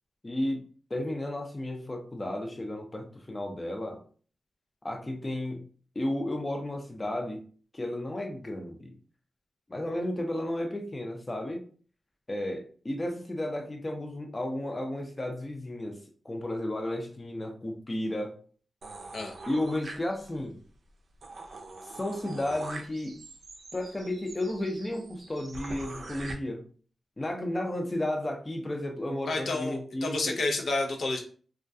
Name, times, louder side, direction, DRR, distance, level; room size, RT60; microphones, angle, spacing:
voice 1, 0.2-0.6 0.9-4.0 4.8-5.7 6.0-7.4 7.7-8.9 9.7-11.6 12.3-16.0 16.2-18.4 19.5-20.6 21.8-23.2 23.7-26.7 27.2-30.4, left 1 dB, 30° left, 3 dB, 0.5 m, -33 dB
sound 1, 18.8-20.5 20.9-21.0 21.2-26.3, right 2 dB, 70° right, 0.5 m, -44 dB
voice 2, 29.3-31.2, left 2 dB, 75° left, 2 dB, 0.5 m, -30 dB
2.3 x 2.2 x 2.6 m, 0.43 s
cardioid pair, 50°, 0 cm